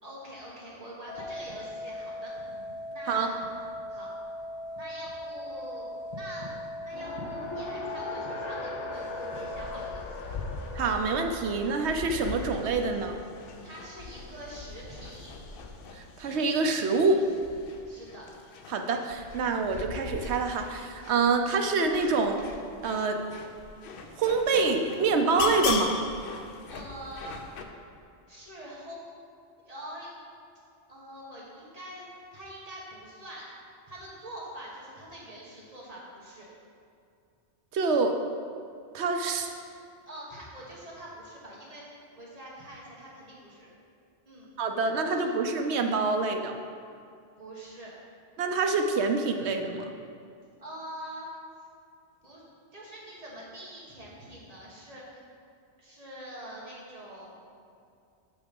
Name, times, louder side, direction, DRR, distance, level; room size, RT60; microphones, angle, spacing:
voice 1, 0.0-2.6 2.9-3.4 3.9-4.1 4.7-6.5 6.8-10.3 13.6-15.3 17.8-18.3 26.7-27.5 28.3-29.1 29.6-30.1 30.9-33.5 33.9-36.5 39.3-39.6 40.0-43.7 44.2-44.5 45.0-45.4 47.4-47.9 50.6-51.3 52.2-52.4 52.7-55.2 55.8-57.4, right 1 dB, 35° right, -5 dB, 1.7 m, -44 dB
sound 1, 1.1-9.7, left 1 dB, 40° left, 1.4 m, -39 dB
Race car auto racing, 6.9-16.0, left 3 dB, 75° left, 1.1 m, -42 dB
sound 2, 8.9-27.6, left 4 dB, 60° left, 0.7 m, -39 dB
voice 2, 10.7-13.1 15.9-17.2 18.7-22.4 22.8-23.2 24.2-25.9 37.7-38.2 38.9-39.4 44.6-46.5 48.4-49.9, right 4 dB, 70° right, 5 dB, 0.9 m, -26 dB
6.5 x 5.8 x 5.3 m, 2.4 s
omnidirectional pair, 1.2 m